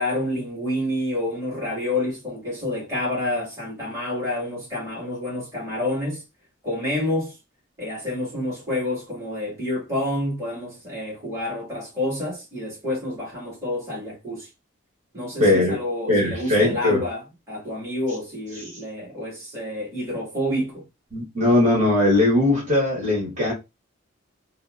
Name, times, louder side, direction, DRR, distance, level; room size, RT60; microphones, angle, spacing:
voice 1, 0.0-6.2 6.6-7.4 7.8-14.5 15.1-20.8, left 1 dB, 15° right, 2.0 m, -28 dB
voice 2, 15.4-15.8 16.1-17.0 21.1-23.5, left 1 dB, 35° right, 1.5 m, -19 dB
4.1 x 2.0 x 2.5 m
head